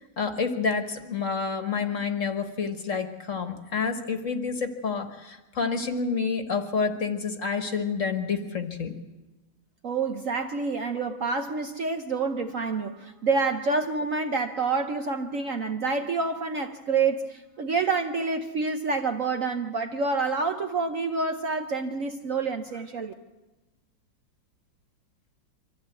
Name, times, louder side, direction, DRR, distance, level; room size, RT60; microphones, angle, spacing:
voice 1, 0.0-8.9, left 5 dB, 45° left, 1.5 m, -29 dB
voice 2, 9.8-23.1, right 4 dB, 55° right, 1.0 m, -28 dB
24.0 x 14.5 x 8.2 m
omnidirectional pair, 2.1 m